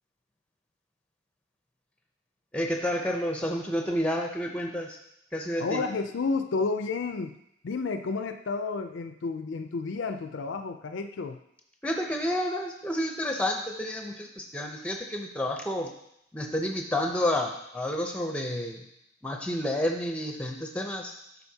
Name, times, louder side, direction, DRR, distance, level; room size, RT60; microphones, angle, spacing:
voice 1, 2.5-5.0 5.3-5.8 11.8-15.9 16.3-18.8 19.2-21.1, left 1 dB, 5° left, 2 dB, 0.6 m, -30 dB
voice 2, 5.6-7.4 7.6-11.4, left 4 dB, 60° left, 7 dB, 0.4 m, -31 dB
11.5 x 4.0 x 2.8 m, 0.77 s
head